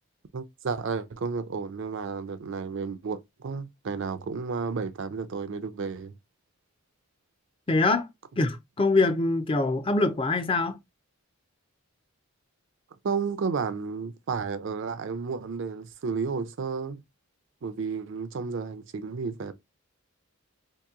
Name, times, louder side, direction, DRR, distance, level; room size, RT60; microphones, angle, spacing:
voice 1, 0.3-6.1 13.0-17.0 17.6-19.5, right 5 dB, 55° right, 0.4 m, -32 dB
voice 2, 7.7-8.1 8.4-10.8, left 3 dB, 25° left, 0.4 m, -24 dB
2.9 x 2.6 x 3.6 m
head